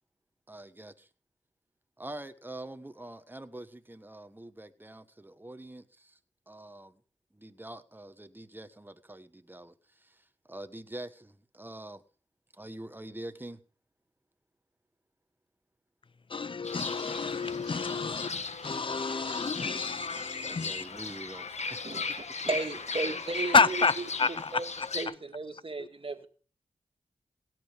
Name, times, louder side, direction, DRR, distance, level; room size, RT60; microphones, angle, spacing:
voice 1, 0.5-1.1 2.0-6.2 6.5-7.0 7.3-12.0 12.5-13.6 20.4-21.9 23.0-23.2, right 1 dB, 15° right, 1.3 m, -45 dB
voice 2, 16.3-18.3 18.6-20.8 23.5-24.9 25.8-25.9, left 4 dB, 45° left, 0.6 m, -29 dB
Fowl / Bird, 16.6-25.1, left 4 dB, 65° left, 1.5 m, -37 dB
voice 3, 22.4-23.9 24.5-24.7 24.9-26.3, right 3 dB, 45° right, 2.0 m, -34 dB
17.0 x 7.9 x 5.1 m
cardioid pair, 45°, 13 cm